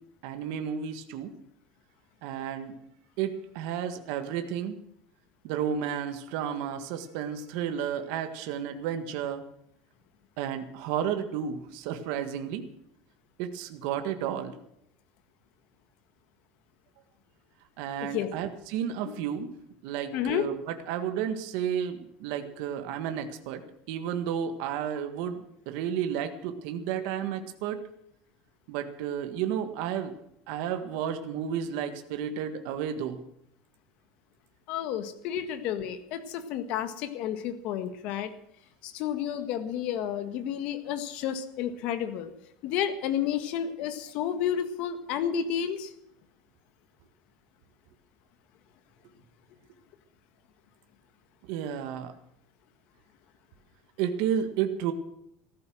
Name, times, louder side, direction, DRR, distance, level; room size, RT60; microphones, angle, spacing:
voice 1, 0.2-1.3 2.2-2.8 3.2-4.7 5.4-9.4 10.4-12.6 13.4-14.5 17.8-19.5 19.8-23.6 23.9-27.8 28.7-30.1 30.5-33.2 51.5-52.1 54.0-54.9, right 9 dB, 55° right, 7 dB, 1.7 m, -32 dB
voice 2, 20.1-20.5 34.7-38.3 38.8-42.3 42.6-45.9, left 9 dB, 45° left, 9 dB, 1.8 m, -31 dB
15.0 x 13.5 x 6.4 m, 0.73 s
cardioid pair, 175°, 3 cm